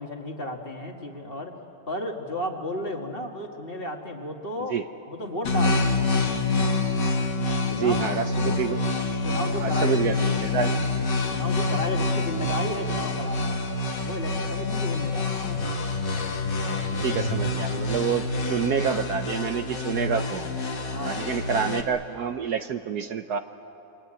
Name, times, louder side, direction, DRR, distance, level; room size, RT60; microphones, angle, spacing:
voice 1, 0.0-1.6 1.9-4.8 5.1-6.0 7.7-8.0 8.4-8.6 9.2-10.0 10.5-10.9 11.3-13.6 14.0-15.4 20.1-20.3 20.9-21.3, equal, 30° left, 2 dB, 2.0 m, -33 dB
sound 1, 5.4-21.8, left 3 dB, 65° left, 2.5 m, -27 dB
voice 2, 7.7-8.8 9.6-10.7 16.6-20.6 20.8-23.4, right 7 dB, 60° right, 8 dB, 1.2 m, -28 dB
28.0 x 23.5 x 9.1 m, 2.8 s
omnidirectional pair, 2.0 m